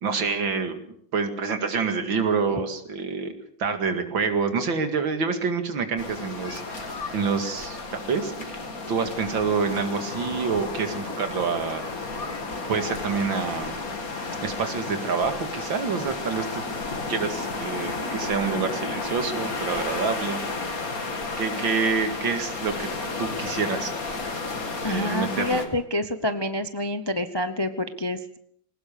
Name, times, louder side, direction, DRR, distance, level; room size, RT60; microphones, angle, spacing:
voice 1, 0.0-0.7 1.1-3.3 3.6-8.5 8.9-11.9 12.7-13.8 14.4-16.6 17.1-20.4 21.4-22.9 23.2-23.9 24.9-25.6, right 5 dB, 70° right, 7 dB, 2.9 m, -27 dB
sound 1, 6.0-25.7, left 3 dB, 45° left, 2.6 m, -32 dB
voice 2, 24.8-28.4, left 1 dB, 30° left, 10 dB, 0.5 m, -28 dB
21.0 x 19.0 x 6.9 m, 0.67 s
omnidirectional pair, 2.2 m